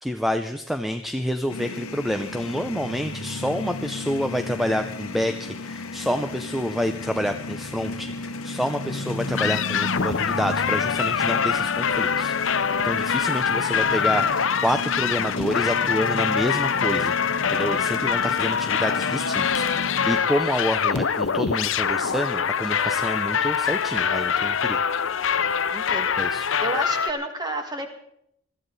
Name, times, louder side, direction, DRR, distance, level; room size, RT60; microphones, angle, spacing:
voice 1, 0.0-17.1 17.5-24.8 26.2-26.5, equal, ahead, 8 dB, 0.5 m, -28 dB
sound 1, 1.5-20.1, left 2 dB, 80° left, 1.2 m, -34 dB
sound 2, 9.4-27.1, left 7 dB, 60° left, 0.7 m, -24 dB
voice 2, 25.7-26.3 26.6-27.9, right 1 dB, 20° right, 5 dB, 1.9 m, -31 dB
21.5 x 14.5 x 4.1 m, 0.75 s
head